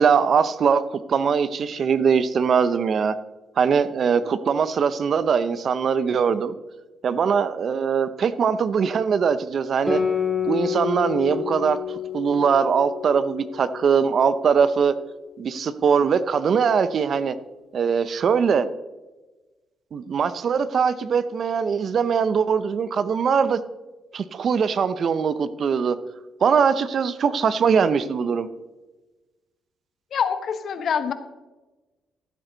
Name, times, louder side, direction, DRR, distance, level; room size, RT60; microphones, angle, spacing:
voice 1, 0.0-3.1 3.6-6.5 7.0-10.0 10.5-11.8 12.1-14.9 15.4-17.3 17.7-18.7 19.9-23.6 24.1-26.0 26.4-28.5, right 6 dB, 55° right, 14 dB, 0.6 m, -21 dB
Guitar, 9.9-14.8, left 7 dB, 5° left, 2.4 m, -29 dB
voice 2, 30.1-31.1, left 7 dB, 60° left, 10 dB, 1.0 m, -25 dB
14.5 x 8.1 x 3.9 m, 1.2 s
cardioid pair, 90°, 0 cm